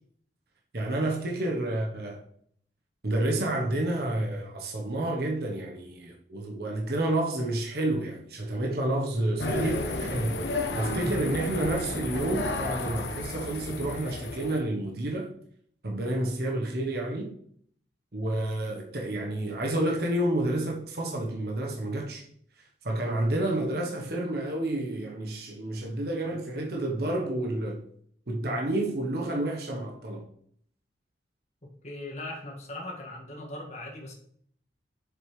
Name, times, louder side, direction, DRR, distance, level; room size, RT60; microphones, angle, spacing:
voice 1, 0.7-2.2 3.0-10.4 10.7-15.3 15.8-17.3 18.1-22.2 22.6-27.8 28.3-30.2, right 1 dB, 55° right, 1.1 m, -29 dB
sound 1, 9.4-14.6, left 2 dB, 70° left, 1.1 m, -32 dB
voice 2, 31.6-34.1, left 1 dB, 35° left, 1.9 m, -40 dB
7.6 x 6.9 x 3.3 m
head